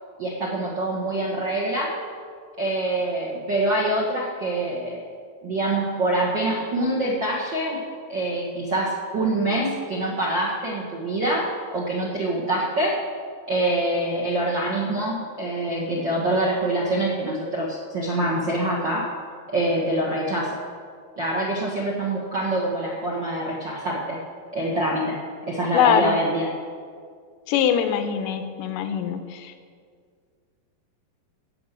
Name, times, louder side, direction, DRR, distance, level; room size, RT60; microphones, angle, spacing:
voice 1, 0.2-1.9 2.6-5.0 5.4-7.8 8.1-11.4 11.7-12.9 13.5-19.0 19.5-20.6 21.2-24.2 24.5-25.2 25.5-26.5, right 1 dB, 50° right, -4 dB, 1.4 m, -25 dB
voice 2, 25.7-26.2 27.5-29.5, left 8 dB, 75° left, 8 dB, 2.2 m, -22 dB
16.0 x 5.8 x 8.2 m, 2.1 s
omnidirectional pair, 4.4 m